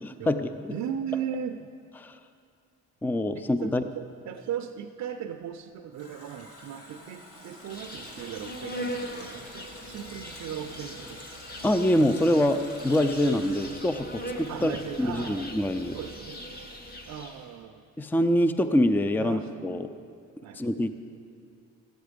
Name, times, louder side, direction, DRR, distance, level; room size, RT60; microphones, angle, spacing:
voice 1, 0.7-1.8 3.3-11.4 14.5-15.5 15.9-16.4 17.1-17.8 19.2-20.0 20.4-20.6, right 9 dB, 70° right, 5 dB, 0.6 m, -37 dB
voice 2, 3.0-3.8 11.6-14.7 15.0-16.0 18.0-19.9 20.6-20.9, left 1 dB, 5° left, 10 dB, 0.4 m, -25 dB
Water tap faucet, 5.5-15.1 15.4-15.5, left 1 dB, 50° left, 2.1 m, -49 dB
Insect, 7.7-17.5, equal, 30° left, 1.5 m, -40 dB
14.0 x 9.2 x 5.1 m, 2.4 s
cardioid pair, 90°, 30 cm